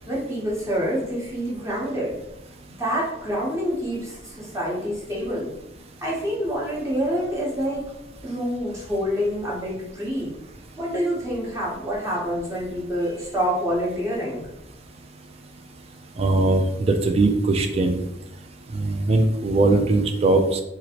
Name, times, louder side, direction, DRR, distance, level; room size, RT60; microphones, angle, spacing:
voice 1, 0.1-2.2 2.8-5.5 6.0-7.8 8.2-10.3 10.8-14.4, equal, 15° right, -5 dB, 0.8 m, -27 dB
voice 2, 16.2-18.0 18.7-20.6, right 2 dB, 30° right, 5 dB, 0.3 m, -20 dB
2.9 x 2.5 x 2.9 m, 0.85 s
head